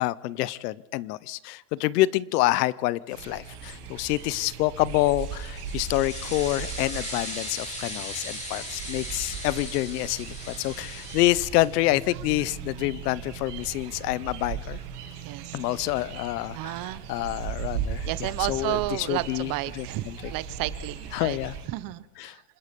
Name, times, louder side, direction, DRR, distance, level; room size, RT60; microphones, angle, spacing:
voice 1, 0.0-14.8 15.5-20.3 21.1-21.6 22.2-22.3, left 17 dB, 80° left, 21 dB, 0.9 m, -27 dB
sound 1, 3.1-21.7, right 7 dB, 80° right, 5.3 m, -38 dB
sound 2, 5.0-11.9, left 1 dB, 15° left, 7.8 m, -38 dB
voice 2, 15.2-15.6 16.5-17.0 18.1-21.4 21.7-22.4, right 17 dB, 45° right, 17 dB, 1.0 m, -32 dB
26.5 x 20.0 x 5.3 m, 1.1 s
supercardioid pair, 130°, 46 cm